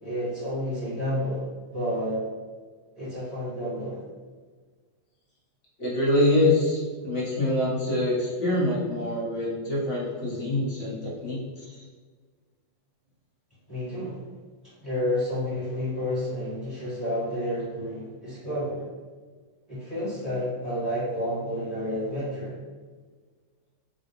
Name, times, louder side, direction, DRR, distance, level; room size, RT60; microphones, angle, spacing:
voice 1, 0.0-2.2 3.0-4.0 13.7-14.2 14.6-18.9 19.7-22.5, equal, 10° left, -11 dB, 1.1 m, -30 dB
voice 2, 5.8-11.8, left 1 dB, 45° left, -7 dB, 1.2 m, -25 dB
3.6 x 2.3 x 2.9 m, 1.5 s
omnidirectional pair, 2.1 m